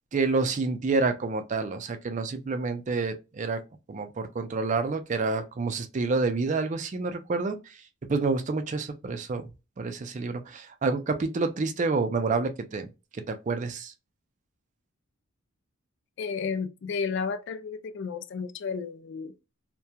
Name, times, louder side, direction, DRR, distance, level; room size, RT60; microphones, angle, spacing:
voice 1, 0.1-3.6 3.9-7.6 8.1-9.5 9.8-12.9 13.1-13.9, right 3 dB, 35° right, 0.4 m, -28 dB
voice 2, 16.2-19.3, left 5 dB, 55° left, 0.3 m, -32 dB
2.7 x 2.1 x 2.2 m
head